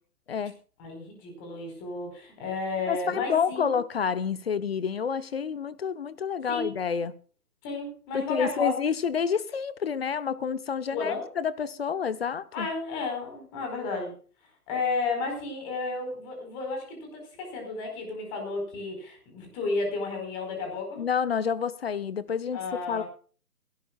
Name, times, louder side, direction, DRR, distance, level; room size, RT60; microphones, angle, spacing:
voice 1, 0.8-3.8 6.5-6.7 7.6-8.7 10.9-11.2 12.5-14.2 14.7-21.0 22.5-23.0, left 3 dB, 20° left, 4.9 m, -32 dB
voice 2, 2.9-7.1 8.1-12.7 21.0-22.6 22.9-23.0, left 7 dB, 40° left, 0.9 m, -29 dB
22.0 x 12.5 x 2.4 m
figure-of-eight pair, 150°, 46 cm